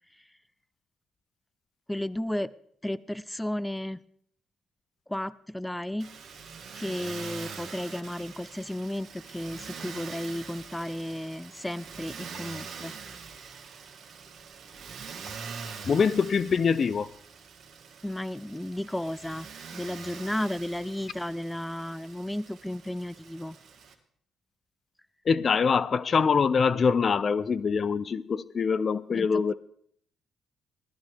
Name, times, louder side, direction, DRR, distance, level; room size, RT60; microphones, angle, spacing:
voice 1, 1.9-2.5 2.8-4.0 5.1-6.1 6.8-12.9 18.0-19.5 19.7-23.6 29.1-29.5, left 1 dB, 10° left, 0.6 m, -33 dB
Motor vehicle (road), 6.0-23.9, right 6 dB, 60° right, 2.0 m, -44 dB
voice 2, 15.9-17.1 25.3-29.5, left 5 dB, 50° left, 0.6 m, -24 dB
18.0 x 13.5 x 3.6 m
hypercardioid pair, 45°, 0 cm